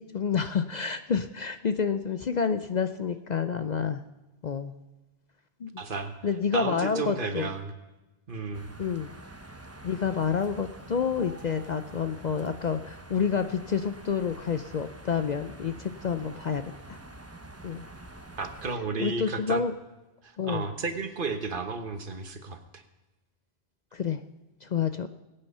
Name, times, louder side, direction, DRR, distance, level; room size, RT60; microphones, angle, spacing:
voice 1, 0.0-4.0 4.4-4.7 5.6-5.7 6.2-7.5 8.8-9.1 9.8-16.6 16.9-17.0 17.6-17.8 19.0-19.7 20.4-20.7 23.9-24.2 24.6-25.1, left 6 dB, 50° left, 10 dB, 0.6 m, -29 dB
voice 2, 5.8-6.1 6.5-7.7 8.3-8.7 18.4-19.6 20.2-22.8, right 4 dB, 55° right, 8 dB, 1.3 m, -33 dB
sound 1, 8.5-18.8, right 2 dB, 15° right, 0.9 m, -46 dB
21.5 x 8.9 x 5.5 m, 1.1 s
omnidirectional pair, 1.1 m